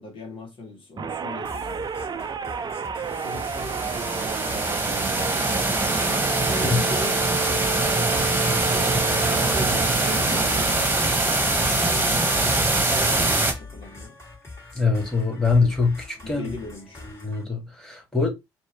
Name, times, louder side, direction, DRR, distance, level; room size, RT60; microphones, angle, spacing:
voice 1, 0.0-1.8 2.9-5.4 6.4-7.8 8.5-12.6 12.8-14.2 15.5-15.6 16.2-17.0, left 1 dB, 55° left, 1.5 m, -40 dB
sound 1, 1.0-11.3, right 6 dB, 40° right, 0.6 m, -31 dB
sound 2, 1.4-17.4, left 3 dB, 25° left, 3.1 m, -43 dB
sound 3, 3.2-13.5, right 2 dB, 15° right, 1.4 m, -23 dB
voice 2, 14.7-16.6 17.0-18.3, left 4 dB, 5° left, 2.3 m, -23 dB
4.4 x 2.8 x 3.1 m
hypercardioid pair, 50°, 11 cm